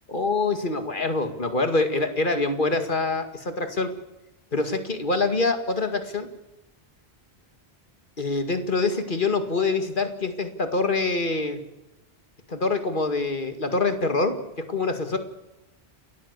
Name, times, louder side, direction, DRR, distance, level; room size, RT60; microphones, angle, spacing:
voice 1, 0.1-3.9 4.5-6.3 8.2-11.6 12.5-15.2, left 3 dB, 50° left, 7 dB, 2.3 m, -25 dB
30.0 x 14.0 x 8.3 m, 0.99 s
omnidirectional pair, 1.1 m